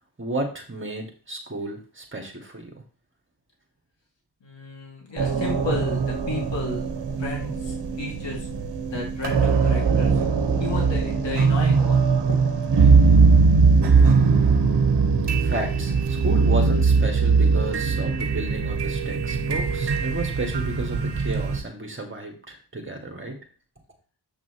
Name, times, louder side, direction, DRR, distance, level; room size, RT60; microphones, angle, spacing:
voice 1, 0.2-2.7 15.4-23.4, right 2 dB, 30° right, 3 dB, 2.1 m, -32 dB
voice 2, 4.4-6.9 7.2-8.5 8.9-10.1 10.6-12.4, left 3 dB, 85° left, -1 dB, 2.4 m, -33 dB
sound 1, 5.2-21.6, right 4 dB, 70° right, 1.2 m, -20 dB
7.9 x 6.0 x 3.0 m, 0.36 s
cardioid pair, 60°, 42 cm